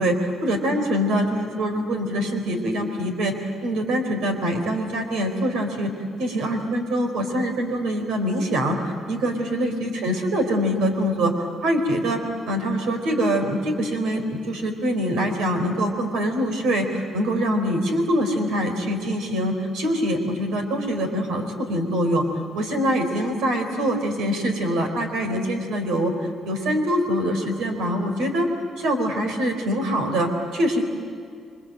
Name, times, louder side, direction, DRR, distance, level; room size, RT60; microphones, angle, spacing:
voice 1, 0.0-3.4 3.6-5.9 6.2-8.8 9.1-22.2 22.5-26.1 26.4-28.5 28.8-30.9, equal, 90° right, 4 dB, 4.0 m, -24 dB
27.5 x 24.0 x 7.8 m, 2.2 s
cardioid pair, 90°, 0 cm